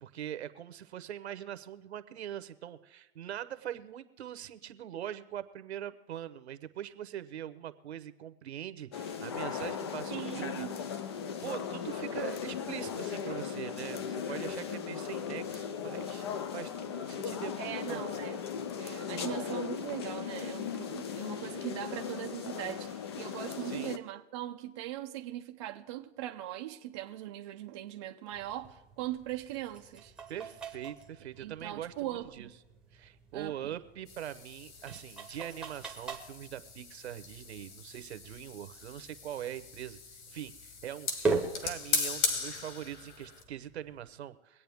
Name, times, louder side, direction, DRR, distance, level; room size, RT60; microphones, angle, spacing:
voice 1, 0.0-10.7 11.4-16.3 16.5-18.1 23.6-23.9 30.3-32.5 32.9-40.0 40.3-44.6, right 11 dB, 65° right, 1.0 m, -42 dB
sound 1, 8.9-24.0, left 7 dB, 25° left, 0.4 m, -37 dB
voice 2, 10.1-10.8 17.6-18.4 18.7-30.1 31.4-32.5 33.3-33.7, right 13 dB, 25° right, 0.5 m, -40 dB
sound 2, 28.3-44.1, right 4 dB, ahead, 0.9 m, -42 dB
sound 3, 34.1-43.4, left 5 dB, 45° left, 2.1 m, -39 dB
23.0 x 8.6 x 3.6 m
hypercardioid pair, 150°, 35 cm